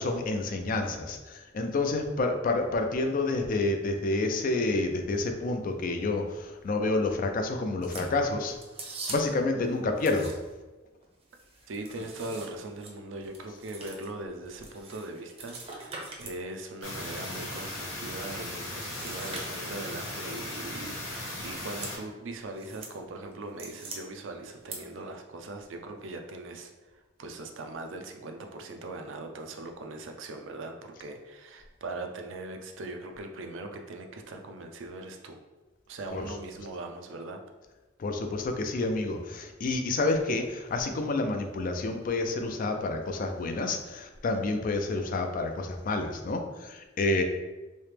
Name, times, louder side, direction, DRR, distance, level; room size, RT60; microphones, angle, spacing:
voice 1, 0.0-8.6 9.1-10.3 36.1-36.3 38.0-47.2, left 2 dB, 45° left, 5 dB, 0.4 m, -29 dB
sound 1, 7.8-9.5 9.9-10.7 11.0-16.4 16.8-17.9 18.6-19.9 20.8-21.1 21.5-22.0 22.3-22.9 23.3-24.0 24.5-24.8, right 3 dB, 30° right, 0.6 m, -44 dB
voice 2, 11.7-26.7 27.2-35.4 35.9-37.4, right 2 dB, 70° right, 4 dB, 0.4 m, -40 dB
sound 2, 16.8-22.0, left 1 dB, 90° left, 1.1 m, -37 dB
3.1 x 2.8 x 3.3 m, 1.2 s
head